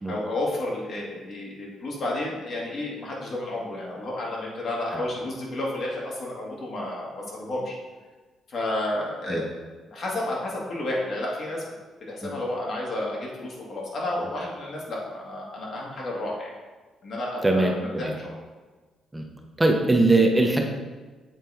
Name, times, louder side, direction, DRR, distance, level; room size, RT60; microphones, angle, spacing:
voice 1, 0.1-7.8 8.5-9.5 9.9-11.6 12.1-16.5 17.0-18.3, left 1 dB, 55° left, -3 dB, 1.9 m, -31 dB
voice 2, 17.4-18.1 19.1-19.2 19.6-20.6, right 2 dB, 15° right, 2 dB, 0.8 m, -21 dB
7.6 x 4.1 x 3.5 m, 1.3 s
cardioid pair, 90°, 0 cm